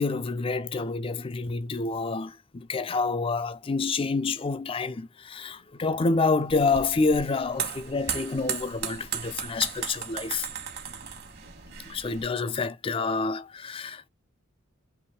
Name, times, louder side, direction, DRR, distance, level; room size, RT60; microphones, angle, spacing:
voice 1, 0.0-10.5 11.9-14.1, left 4 dB, 25° left, 0.4 m, -28 dB
sound 1, 6.5-12.2, right 7 dB, 55° right, 1.3 m, -36 dB
3.4 x 3.1 x 4.2 m
head